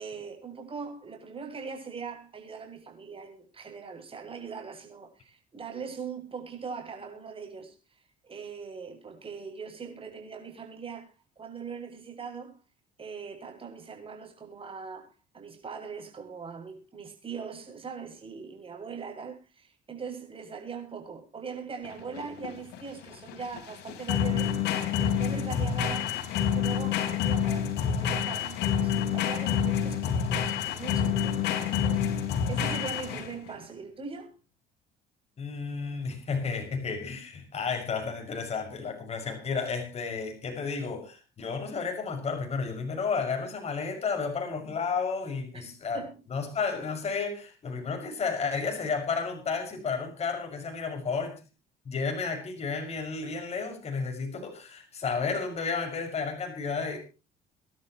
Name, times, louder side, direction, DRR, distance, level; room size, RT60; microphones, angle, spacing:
voice 1, 0.0-12.6 13.0-24.5 24.9-34.3 45.5-46.2, right 5 dB, 30° right, 7.9 m, -41 dB
sound 1, 21.8-33.5, left 8 dB, 80° left, 3.9 m, -28 dB
voice 2, 35.4-46.0 46.3-51.4 51.8-57.0, left 5 dB, 40° left, 6.2 m, -32 dB
26.0 x 12.0 x 3.1 m
cardioid pair, 110°, 17 cm